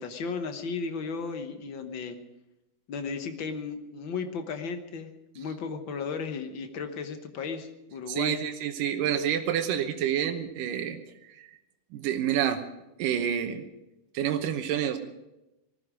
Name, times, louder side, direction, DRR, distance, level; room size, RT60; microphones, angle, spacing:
voice 1, 0.0-2.2 2.9-8.4, left 5 dB, 65° left, 7 dB, 1.2 m, -35 dB
voice 2, 8.1-11.0 11.4-11.5 11.9-12.6 13.0-13.6 14.1-15.0, right 9 dB, 85° right, 6 dB, 2.6 m, -28 dB
19.5 x 14.5 x 4.9 m, 0.93 s
omnidirectional pair, 3.7 m